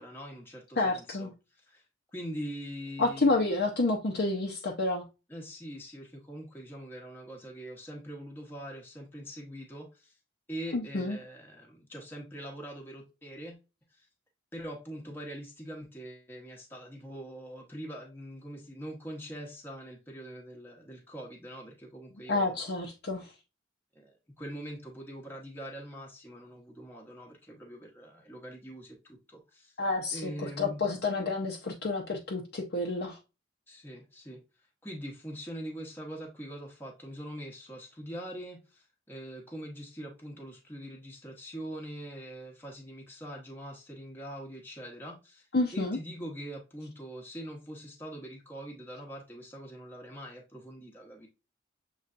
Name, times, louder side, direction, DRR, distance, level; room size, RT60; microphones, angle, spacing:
voice 1, 0.0-1.8 2.1-3.5 5.3-10.2 10.5-13.6 13.9-14.1 14.5-22.6 23.9-29.8 30.1-30.8 33.7-34.4 34.8-45.5 45.7-51.3, equal, 10° left, 1.0 m, -43 dB
voice 2, 0.8-1.3 3.0-5.0 10.7-11.2 22.3-23.3 29.8-33.2 45.5-46.0, left 2 dB, 55° left, 0.7 m, -29 dB
6.7 x 3.2 x 2.5 m
head